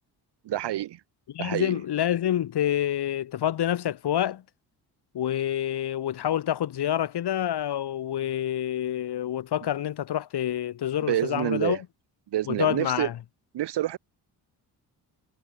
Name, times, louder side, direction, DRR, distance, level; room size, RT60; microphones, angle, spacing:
voice 1, 0.4-1.0 1.4-1.8 11.1-11.8 12.3-13.1 13.5-14.0, right 13 dB, 75° right, 1.4 m, -27 dB
voice 2, 1.3-4.4 5.1-11.8 12.5-13.2, left 11 dB, 70° left, 2.8 m, -27 dB
cardioid pair, 120°, 41 cm